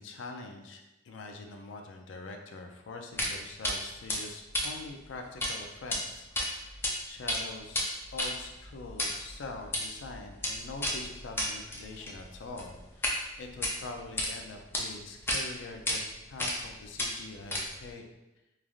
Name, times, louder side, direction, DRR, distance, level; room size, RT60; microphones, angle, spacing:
voice 1, 0.0-18.1, left 3 dB, 85° left, 4 dB, 0.4 m, -44 dB
sound 1, 3.2-3.3 3.6-3.8 4.1-5.5 5.8-6.0 6.3-6.9 7.2-13.2 13.5-14.3 14.7-14.8 15.3-15.4 15.9-16.0 16.4-16.7 17.0-17.9, left 1 dB, 10° left, 0.4 m, -32 dB
3.2 x 2.4 x 2.4 m, 0.97 s
head